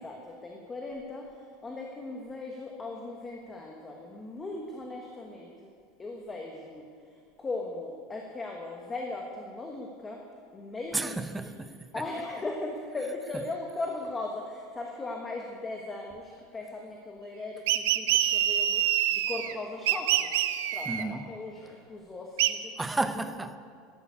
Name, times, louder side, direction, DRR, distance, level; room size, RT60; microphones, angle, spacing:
voice 1, 0.0-5.7 6.0-10.2 10.5-11.5 11.9-18.9 19.1-22.9 23.1-23.3, left 2 dB, 10° left, 1 dB, 1.3 m, -38 dB
voice 2, 10.9-12.0 20.9-21.3 22.8-23.6, right 2 dB, 5° right, 11 dB, 0.6 m, -32 dB
sound 1, 17.7-19.5 19.9-21.0 22.4-22.5, right 12 dB, 80° right, 0.9 m, -26 dB
13.0 x 11.0 x 9.7 m, 2.2 s
supercardioid pair, 170°, 0 cm